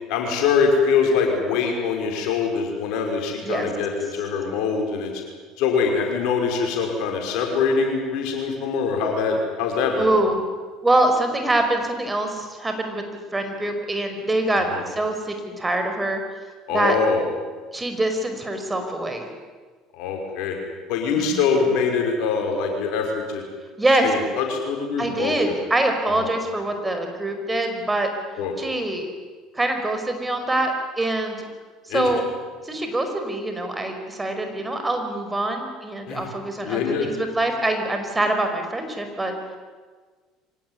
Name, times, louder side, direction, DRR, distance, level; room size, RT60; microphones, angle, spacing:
voice 1, 0.1-5.2 5.6-10.1 14.5-14.8 16.7-17.2 20.0-20.6 20.9-23.4 24.0-25.4 26.2-26.3 28.4-28.5 31.9-32.1 36.1-36.2 36.6-37.1, left 5 dB, 65° left, 2 dB, 5.7 m, -23 dB
voice 2, 10.0-10.4 10.8-13.1 13.3-16.2 16.7-17.0 17.7-19.3 21.2-21.5 23.8-24.1 25.0-28.1 28.6-29.1 29.5-31.4 31.8-32.3 32.6-39.3, right 2 dB, 15° right, 5 dB, 5.2 m, -24 dB
24.5 x 19.0 x 9.9 m, 1.4 s
hypercardioid pair, 65°, 0 cm